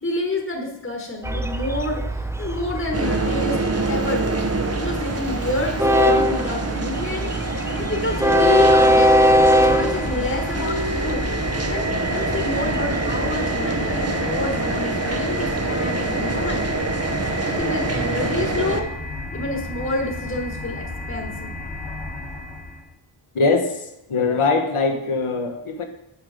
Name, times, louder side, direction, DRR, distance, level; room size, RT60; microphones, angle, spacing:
voice 1, 0.0-3.6 3.9-4.4 4.8-9.1 9.5-11.3 11.7-16.7 17.4-18.9 19.3-21.6, left 2 dB, 25° left, 1 dB, 1.4 m, -28 dB
Train, 1.2-14.2, equal, 5° right, 0.3 m, -22 dB
sound 1, 2.9-18.8, right 2 dB, 30° right, 0.9 m, -26 dB
sound 2, 6.8-22.9, left 2 dB, 65° left, 1.6 m, -33 dB
voice 2, 23.3-25.8, left 4 dB, 80° left, 4 dB, 1.3 m, -22 dB
8.3 x 5.8 x 5.0 m, 0.89 s
wide cardioid pair, 85°, 49 cm